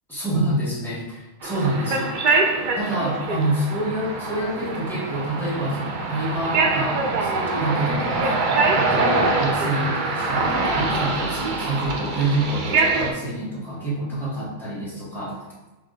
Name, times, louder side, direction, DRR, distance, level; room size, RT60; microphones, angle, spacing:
voice 1, 0.1-2.1 2.8-8.3 8.7-15.4, right 1 dB, ahead, -8 dB, 1.3 m, -27 dB
sound 1, 1.4-13.1, right 3 dB, 60° right, 0.5 m, -24 dB
3.5 x 3.3 x 3.9 m, 1.1 s
omnidirectional pair, 1.3 m